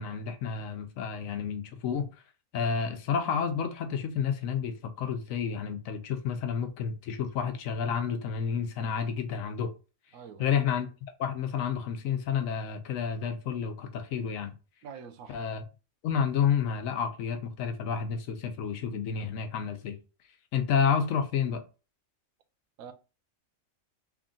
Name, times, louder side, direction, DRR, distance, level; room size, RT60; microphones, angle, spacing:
voice 1, 0.0-2.1 2.5-9.7 10.4-10.9 11.2-14.5 15.3-15.6 16.0-20.0 20.5-21.6, left 7 dB, 80° left, 1.1 m, -30 dB
voice 2, 10.1-10.5 14.8-15.4 22.8-22.9, right 7 dB, 85° right, 1.0 m, -45 dB
3.4 x 2.5 x 3.7 m
omnidirectional pair, 1.4 m